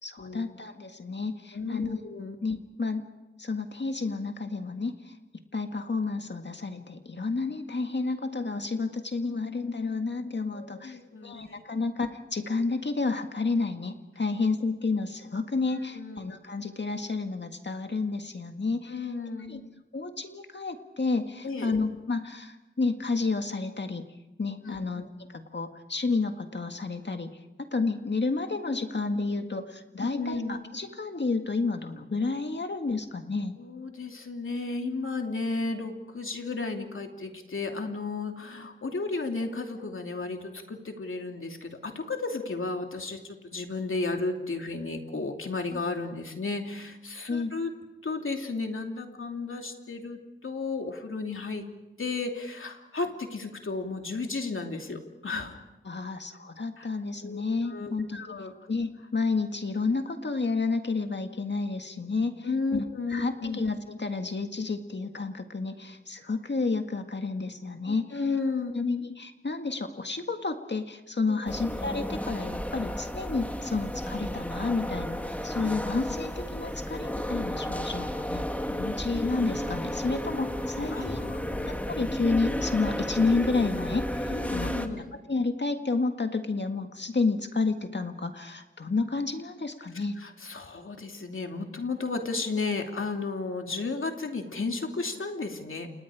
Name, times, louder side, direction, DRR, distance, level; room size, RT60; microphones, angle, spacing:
voice 1, 0.0-2.0 2.4-3.1 3.4-5.1 5.5-19.1 19.5-19.6 19.9-24.1 24.4-25.1 25.3-33.5 45.7-45.8 47.3-47.5 55.9-58.3 58.7-68.2 68.7-81.2 81.7-84.7 85.1-90.2, left 3 dB, 60° left, 6 dB, 1.9 m, -30 dB
voice 2, 1.5-2.4 10.5-11.7 15.9-16.2 18.9-19.6 21.4-21.8 24.6-24.8 30.0-30.6 33.6-47.7 48.0-51.6 52.0-55.6 56.8-56.9 57.2-58.5 62.4-63.6 67.9-68.7 71.3-71.4 80.9-81.7 84.3-85.1 90.2-95.9, left 3 dB, 90° left, 3 dB, 2.8 m, -33 dB
sound 1, 71.5-84.9, equal, 5° left, 2.1 m, -33 dB
29.5 x 28.5 x 5.0 m, 1.0 s
wide cardioid pair, 70°, 20 cm